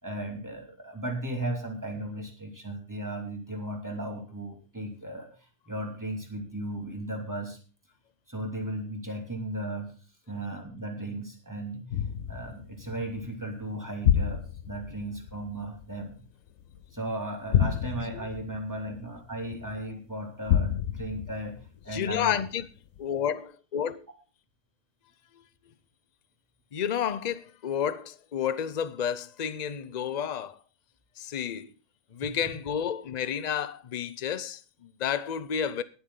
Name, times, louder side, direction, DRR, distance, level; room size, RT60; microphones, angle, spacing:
voice 1, 0.0-5.3 5.7-7.6 8.3-9.9 10.3-11.8 12.3-16.2 16.9-21.5 21.8-22.4, right 1 dB, 10° right, 2.9 m, -36 dB
sound 1, 11.9-16.9 17.4-19.8 20.4-22.5 23.0-23.1, left 9 dB, 70° left, 1.2 m, -30 dB
voice 2, 21.9-22.7 23.0-24.0 26.7-30.6 31.2-31.7 32.1-35.8, left 8 dB, 40° left, 0.6 m, -31 dB
20.5 x 7.2 x 3.8 m
omnidirectional pair, 1.5 m